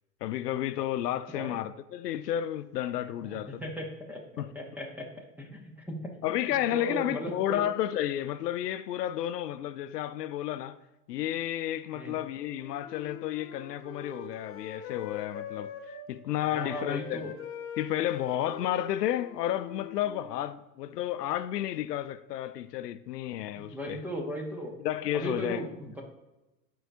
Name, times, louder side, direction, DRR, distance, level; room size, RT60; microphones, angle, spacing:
voice 1, 0.2-3.6 4.4-4.5 6.2-10.8 11.1-15.7 16.1-17.3 17.8-24.0 24.8-25.7, left 12 dB, 75° left, 0.6 m, -32 dB
voice 2, 3.2-5.1 5.4-6.3 6.7-7.6 11.9-12.1 16.5-17.3 23.5-24.7 25.1-26.0, equal, 5° right, 0.6 m, -37 dB
Wind instrument woodwind instrument, 12.3-16.1 16.4-20.5, left 6 dB, 25° left, 0.8 m, -43 dB
12.0 x 4.7 x 2.6 m
hypercardioid pair, 125°, 49 cm